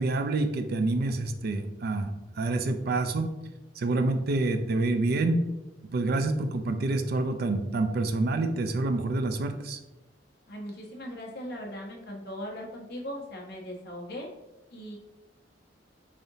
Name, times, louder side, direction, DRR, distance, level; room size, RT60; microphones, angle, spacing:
voice 1, 0.0-2.1 2.4-3.3 3.8-5.4 5.9-9.8, right 2 dB, 55° right, 8 dB, 0.4 m, -27 dB
voice 2, 10.5-14.3 14.7-15.0, equal, 60° left, -1 dB, 0.9 m, -39 dB
4.9 x 2.7 x 2.7 m, 0.98 s
head